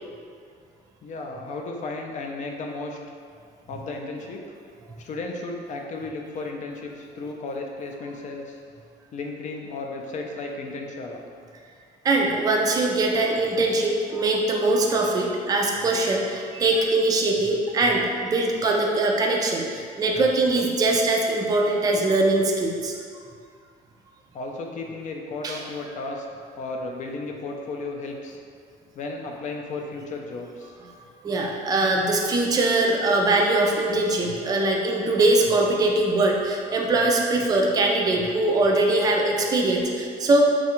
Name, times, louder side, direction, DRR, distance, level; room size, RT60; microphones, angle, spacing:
voice 1, 1.0-3.0 3.7-4.4 5.0-8.6 9.1-11.2 24.3-26.3 26.6-28.4 29.0-30.7, left 3 dB, 45° left, 1 dB, 0.4 m, -34 dB
voice 2, 12.0-22.9 25.4-25.6 31.2-40.4, right 2 dB, 20° right, 0 dB, 0.3 m, -22 dB
3.2 x 2.3 x 2.9 m, 2.2 s
cardioid pair, 110°, 17 cm